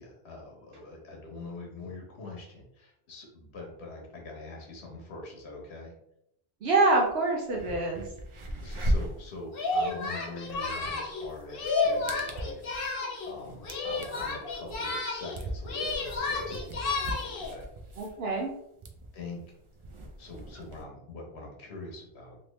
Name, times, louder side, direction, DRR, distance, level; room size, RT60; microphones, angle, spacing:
voice 1, 0.0-6.0 8.6-12.6 13.3-16.7 17.2-17.7 18.0-18.2 19.1-19.4 20.2-22.4, left 2 dB, 85° left, 0 dB, 1.1 m, -44 dB
voice 2, 6.6-8.1 18.0-18.5, right 3 dB, 75° right, -1 dB, 0.8 m, -25 dB
sound 1, 7.0-7.1 7.5-20.8, equal, 55° right, 0.3 m, -38 dB
Singing, 9.5-13.3 13.6-15.4 15.6-17.5, left 3 dB, 65° left, 1.0 m, -31 dB
3.2 x 2.6 x 3.0 m, 0.78 s
omnidirectional pair, 1.1 m